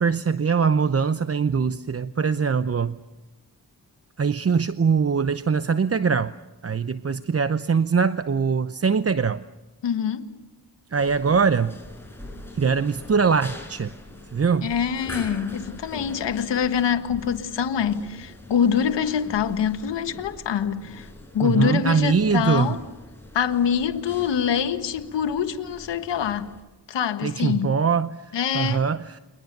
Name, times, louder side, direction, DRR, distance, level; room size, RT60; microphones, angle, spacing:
voice 1, 0.0-3.0 4.2-6.3 6.6-9.4 10.9-11.7 12.5-13.9 14.3-14.7 21.4-22.8 27.2-29.2, right 5 dB, 35° right, 0.8 m, -22 dB
voice 2, 9.8-10.3 14.6-21.1 21.3-22.8 23.3-26.6 26.9-27.7 28.3-28.8, left 8 dB, 90° left, 1.6 m, -25 dB
sound 1, 10.9-26.6, left 1 dB, 5° left, 6.4 m, -43 dB
29.5 x 23.0 x 6.7 m
cardioid pair, 60°, 41 cm